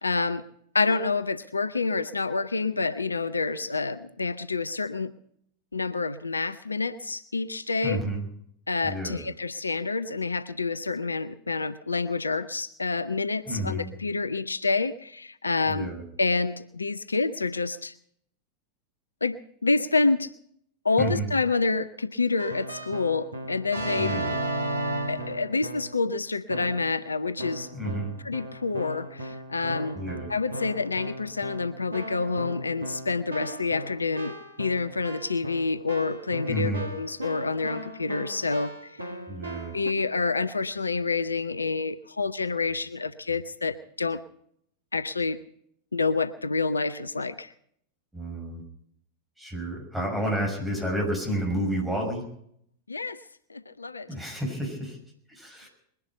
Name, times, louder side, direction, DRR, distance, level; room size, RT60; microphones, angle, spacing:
voice 1, 0.0-0.4 0.7-5.1 5.7-8.0 8.7-15.9 16.2-17.9 19.2-20.3 20.8-24.1 25.1-27.7 28.2-30.0 30.3-38.7 39.0-39.1 39.7-44.2 44.9-45.4 45.9-47.5 52.9-53.2 53.5-54.1, left 4 dB, 80° left, 15 dB, 0.6 m, -28 dB
voice 2, 7.8-8.3 8.8-9.2 13.5-13.9 15.7-16.0 21.0-21.3 24.0-24.3 27.7-28.1 29.9-30.3 36.5-36.8 39.3-39.8 48.1-48.6 49.4-52.3 54.1-55.0 55.3-55.7, right 1 dB, 5° right, 0 dB, 6.2 m, -30 dB
Keyboard (musical), 22.4-26.0 26.5-27.0 27.4-39.9, right 1 dB, 80° right, 1.6 m, -36 dB
21.5 x 10.5 x 5.7 m, 0.68 s
figure-of-eight pair, 90°, 0 cm